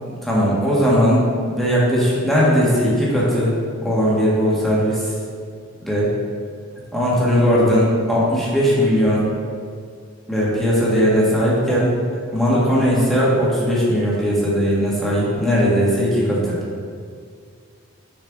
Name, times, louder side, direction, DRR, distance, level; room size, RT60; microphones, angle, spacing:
voice 1, 0.2-1.2 1.5-3.5 3.8-5.0 5.8-6.1 6.9-9.2 10.3-11.9 12.3-16.6, equal, ahead, -7 dB, 1.7 m, -18 dB
7.0 x 5.7 x 3.6 m, 2.2 s
head